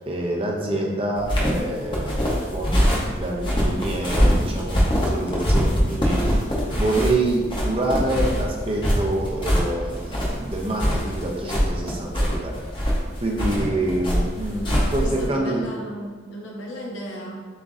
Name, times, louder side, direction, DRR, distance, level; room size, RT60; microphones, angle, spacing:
voice 1, 0.1-12.6 13.2-15.7, right 2 dB, 30° right, -1 dB, 0.5 m, -27 dB
sound 1, 1.2-15.3, equal, 25° left, 0.7 m, -23 dB
voice 2, 14.6-17.5, equal, 90° left, -2 dB, 0.9 m, -35 dB
7.1 x 2.6 x 2.4 m, 1.4 s
head